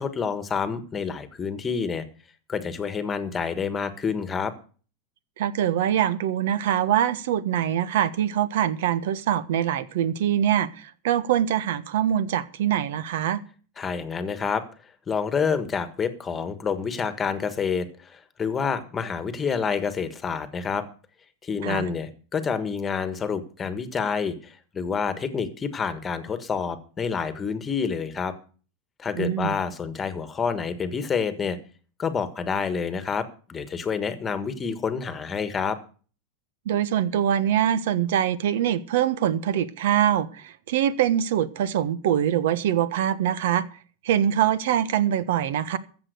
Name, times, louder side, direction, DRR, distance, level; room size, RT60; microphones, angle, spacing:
voice 1, 0.0-2.0 2.5-4.5 13.8-14.6 15.1-20.8 21.4-28.3 29.0-31.6 32.0-35.8, left 6 dB, 20° left, 1.4 m, -28 dB
voice 2, 5.4-13.4 21.6-21.9 29.2-29.6 36.6-43.6 44.0-45.8, right 10 dB, 75° right, 1.2 m, -24 dB
14.5 x 7.5 x 6.7 m
supercardioid pair, 145°, 0 cm